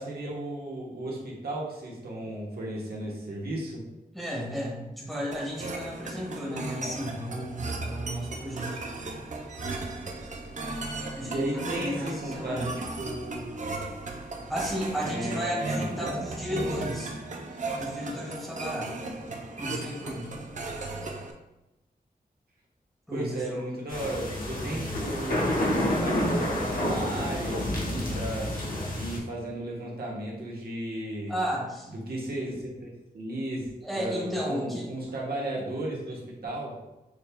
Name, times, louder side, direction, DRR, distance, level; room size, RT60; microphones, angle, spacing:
voice 1, 0.0-3.8 11.2-13.6 15.0-16.2 16.5-16.8 23.1-28.5 28.9-31.3 31.9-33.7 33.9-36.7, right 1 dB, 85° right, -3 dB, 1.1 m, -35 dB
voice 2, 4.1-9.2 11.1-12.7 14.5-17.1 17.8-18.9 19.6-20.3 23.1-23.6 24.5-24.9 31.3-31.9 33.8-34.9, equal, ahead, -5 dB, 1.5 m, -34 dB
sound 1, 5.3-21.3, right 2 dB, 50° right, 0.6 m, -36 dB
sound 2, 23.9-29.2, left 1 dB, 60° left, 1.3 m, -29 dB
6.4 x 3.4 x 2.2 m, 0.99 s
wide cardioid pair, 100°, 16 cm